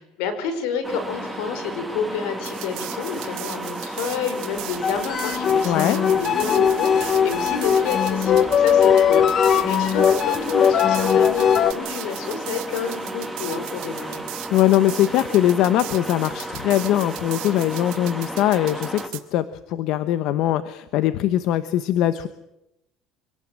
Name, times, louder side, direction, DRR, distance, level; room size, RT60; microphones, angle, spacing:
voice 1, 0.2-14.2, left 5 dB, 85° left, 9 dB, 5.3 m, -29 dB
sound 1, 0.8-19.1, right 1 dB, 5° right, 2.1 m, -33 dB
sound 2, 2.4-19.2, right 18 dB, 75° right, 2.8 m, -38 dB
sound 3, 4.7-11.7, left 8 dB, 35° left, 1.0 m, -19 dB
voice 2, 5.6-6.0 14.5-22.3, left 12 dB, 65° left, 12 dB, 1.1 m, -21 dB
25.5 x 18.0 x 8.9 m, 0.88 s
cardioid pair, 135°, 0 cm